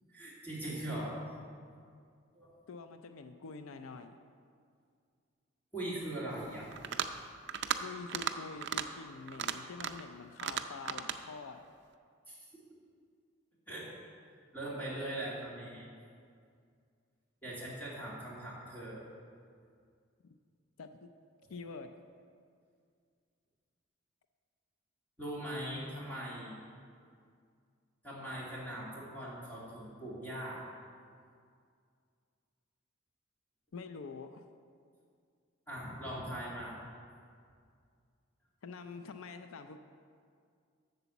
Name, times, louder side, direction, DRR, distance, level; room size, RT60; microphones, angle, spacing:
voice 1, 0.1-1.2 2.3-2.5 5.7-6.7 12.3-12.4 13.7-13.8 14.5-15.9 17.4-19.1 21.4-21.5 25.2-26.6 28.0-30.6 35.7-36.7, right 1 dB, 10° left, -7 dB, 2.4 m, -40 dB
voice 2, 2.7-4.2 7.8-11.6 20.8-21.0 21.5-21.9 33.7-34.5 38.6-39.8, left 4 dB, 85° left, 8 dB, 0.5 m, -46 dB
sound 1, 6.7-7.2 7.5-7.8 8.1-8.3 8.6-8.8 9.3-10.1 10.4-11.2, right 8 dB, 55° right, 0.4 m, -35 dB
8.0 x 6.7 x 7.1 m, 2.2 s
head